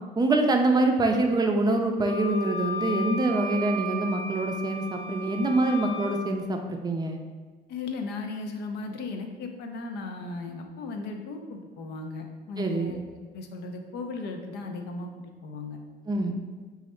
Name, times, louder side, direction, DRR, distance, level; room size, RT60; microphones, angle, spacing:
voice 1, 0.2-7.2 12.6-12.9 16.1-16.3, right 2 dB, 25° right, 3 dB, 0.4 m, -25 dB
Wind instrument woodwind instrument, 2.0-6.2, left 1 dB, 15° left, 0.7 m, -35 dB
voice 2, 7.7-15.1 15.4-15.8, left 3 dB, 80° left, 4 dB, 0.5 m, -36 dB
4.1 x 2.3 x 4.2 m, 1.4 s
cardioid pair, 110°, 17 cm